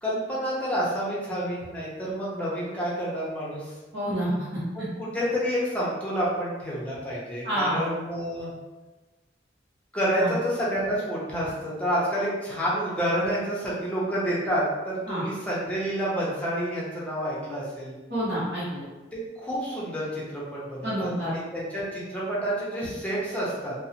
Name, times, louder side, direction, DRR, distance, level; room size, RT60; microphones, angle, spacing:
voice 1, 0.0-3.7 4.7-8.5 9.9-17.9 19.4-23.7, equal, 10° left, -7 dB, 0.6 m, -29 dB
voice 2, 3.9-4.6 7.4-7.8 10.2-10.3 15.1-15.2 18.1-18.8 20.8-21.3, right 1 dB, 65° right, -10 dB, 0.8 m, -28 dB
2.6 x 2.0 x 2.7 m, 1.2 s
head